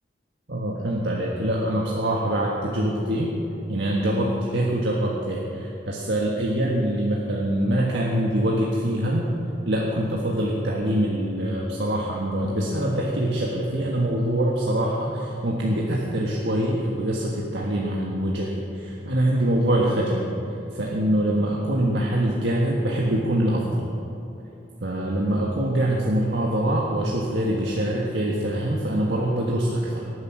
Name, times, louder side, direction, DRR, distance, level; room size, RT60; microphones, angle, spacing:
voice 1, 0.5-3.3 3.7-9.3 9.6-20.3 20.7-23.8 24.8-30.1, right 1 dB, 85° right, -3 dB, 1.6 m, -24 dB
17.5 x 9.7 x 6.2 m, 2.9 s
head